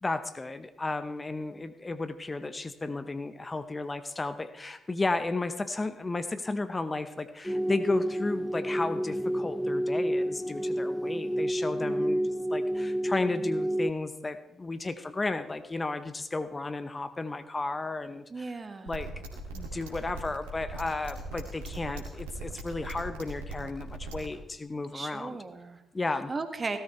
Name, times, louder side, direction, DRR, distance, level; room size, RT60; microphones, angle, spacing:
voice 1, 0.0-12.2 12.5-18.5 18.8-25.4 25.9-26.3, left 3 dB, 30° left, 12 dB, 0.8 m, -33 dB
sound 1, 7.4-13.9, equal, ahead, 0.5 m, -30 dB
voice 2, 11.8-12.3 18.3-18.9 24.9-25.8 26.3-26.8, right 3 dB, 35° right, 8 dB, 1.6 m, -36 dB
sound 2, 18.9-24.3, right 2 dB, 85° right, 2.1 m, -39 dB
16.5 x 13.5 x 3.2 m, 0.89 s
hypercardioid pair, 40°, 0 cm